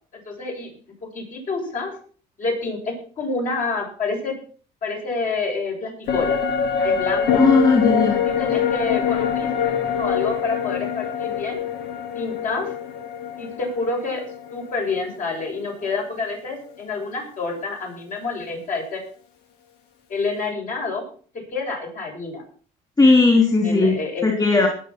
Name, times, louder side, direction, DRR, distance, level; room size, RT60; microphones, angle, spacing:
voice 1, 0.3-0.7 1.1-2.0 2.4-4.3 4.8-6.4 6.8-7.4 8.2-9.7 10.0-11.6 12.1-12.7 13.4-14.2 14.5-19.0 20.1-21.0 21.3-22.4 23.6-24.3, left 3 dB, 50° left, -1 dB, 7.6 m, -28 dB
sound 1, 6.1-15.6 15.9-16.0, left 7 dB, 90° left, 2.1 m, -24 dB
voice 2, 7.4-8.2 23.0-24.0 24.2-24.7, left 3 dB, 25° left, 1 dB, 3.6 m, -16 dB
19.5 x 6.8 x 6.2 m, 0.43 s
cardioid pair, 110°, 17 cm